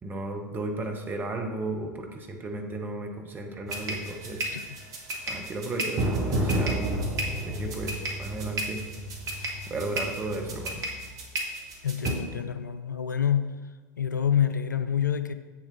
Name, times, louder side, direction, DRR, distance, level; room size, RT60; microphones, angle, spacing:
voice 1, 0.0-4.4 5.3-7.1 7.5-8.8 9.7-10.8, right 2 dB, 20° right, 2 dB, 1.2 m, -34 dB
sound 1, 3.7-12.1, right 1 dB, 35° right, 1.7 m, -31 dB
voice 2, 4.4-4.8 11.8-13.6 14.0-15.3, left 8 dB, 80° left, 11 dB, 0.4 m, -27 dB
7.9 x 7.0 x 4.1 m, 1.3 s
figure-of-eight pair, 80°, 10 cm